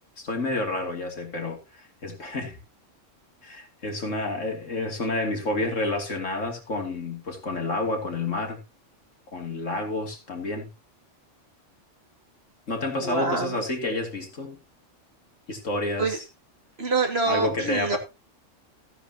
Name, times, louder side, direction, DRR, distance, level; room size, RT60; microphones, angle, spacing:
voice 1, 0.2-2.6 3.4-8.6 9.3-10.7 12.7-14.6 15.5-16.2 17.3-18.0, left 2 dB, 75° left, 3.2 m, -29 dB
voice 2, 13.0-13.6 16.0-16.2 16.8-18.0, right 4 dB, 55° right, 2.6 m, -26 dB
15.5 x 9.9 x 2.9 m
omnidirectional pair, 1.3 m